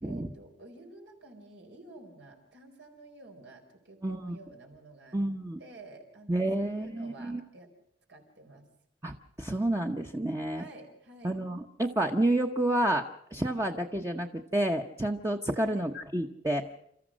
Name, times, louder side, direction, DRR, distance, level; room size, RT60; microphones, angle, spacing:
voice 1, 0.0-5.2 5.6-7.7 8.1-8.7 10.5-11.3 15.6-15.9, right 2 dB, 85° right, 3 dB, 4.4 m, -51 dB
voice 2, 4.0-4.4 5.1-5.6 6.3-7.4 9.0-10.6 11.2-16.7, right 1 dB, 15° right, 3 dB, 0.8 m, -30 dB
29.0 x 14.0 x 6.3 m, 0.74 s
head